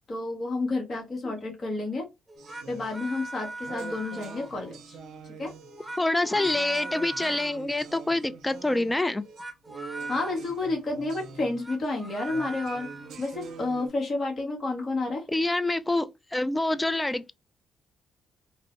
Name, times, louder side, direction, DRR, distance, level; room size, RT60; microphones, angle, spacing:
voice 1, 0.1-2.1 2.7-5.0 5.4-5.5 10.1-12.9 13.2-15.3, left 2 dB, 50° left, 1.2 m, -30 dB
sound 1, 2.3-4.8 5.6-7.7 9.2-10.4 11.4-13.1, right 2 dB, 15° right, 0.8 m, -40 dB
sound 2, 2.4-13.9, right 4 dB, 70° right, 0.5 m, -45 dB
voice 2, 6.0-9.2 15.3-17.3, left 2 dB, 15° left, 0.4 m, -26 dB
2.6 x 2.0 x 3.1 m
hypercardioid pair, 50°, 0 cm